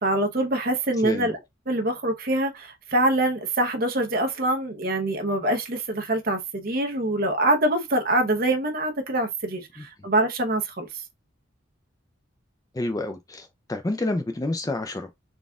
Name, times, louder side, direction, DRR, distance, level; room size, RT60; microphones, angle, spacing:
voice 1, 0.0-1.3 1.7-10.9, right 1 dB, 45° right, 0.8 m, -24 dB
voice 2, 12.7-15.2, left 2 dB, 15° left, 0.4 m, -29 dB
4.1 x 2.4 x 3.5 m
head